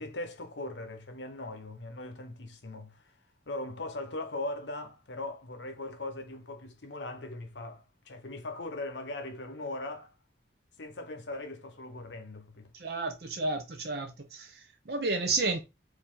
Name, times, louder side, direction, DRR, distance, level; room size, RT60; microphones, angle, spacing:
voice 1, 0.0-3.0 3.5-10.1 10.8-12.7, left 2 dB, 80° left, 0.9 m, -39 dB
voice 2, 12.7-15.6, right 3 dB, 60° right, 0.7 m, -32 dB
4.8 x 2.8 x 3.7 m
head